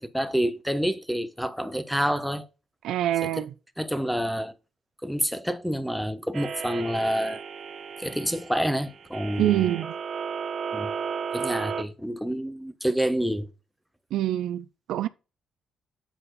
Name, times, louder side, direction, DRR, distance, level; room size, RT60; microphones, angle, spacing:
voice 1, 0.0-2.5 3.2-3.4 3.8-4.5 5.0-7.4 8.0-9.7 10.7-10.9 11.3-13.5, equal, ahead, 0.9 m, -28 dB
voice 2, 2.8-3.5 9.4-9.9 14.1-15.1, right 12 dB, 80° right, 0.4 m, -25 dB
sound 1, 6.3-11.8, right 6 dB, 50° right, 0.8 m, -34 dB
8.1 x 4.4 x 4.0 m
cardioid pair, 90°, 0 cm